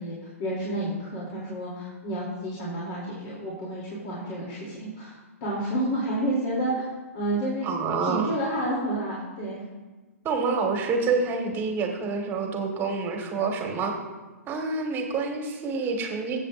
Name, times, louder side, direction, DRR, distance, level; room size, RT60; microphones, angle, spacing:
voice 1, 0.0-6.8 7.1-7.7 8.0-9.7, right 1 dB, 45° left, -5 dB, 3.0 m, -30 dB
voice 2, 7.6-8.3 10.2-14.0 14.5-16.4, right 4 dB, 25° right, 3 dB, 1.6 m, -27 dB
23.0 x 7.7 x 2.5 m, 1.2 s
hypercardioid pair, 120°, 8 cm